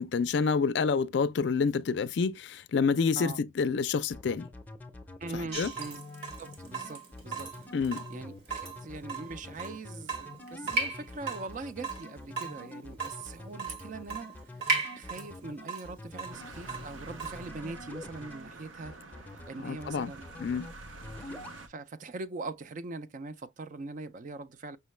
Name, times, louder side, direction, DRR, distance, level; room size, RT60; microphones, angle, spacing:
voice 1, 0.0-4.5 5.3-5.7 7.7-8.1 19.6-20.1 20.4-20.7, left 5 dB, 60° left, 0.4 m, -28 dB
sound 1, 4.1-18.5 18.8-19.5 19.8-20.7 21.0-21.6, left 2 dB, 10° left, 0.6 m, -46 dB
voice 2, 5.2-6.0 6.4-7.7 8.1-14.4 14.9-18.9 19.3-20.3 21.3-24.8, right 3 dB, 40° right, 0.4 m, -42 dB
Water tap faucet / Drip, 5.5-17.5, right 3 dB, 55° right, 1.2 m, -37 dB
sound 2, 16.3-21.7, right 2 dB, 80° right, 0.6 m, -47 dB
5.5 x 2.2 x 3.1 m
head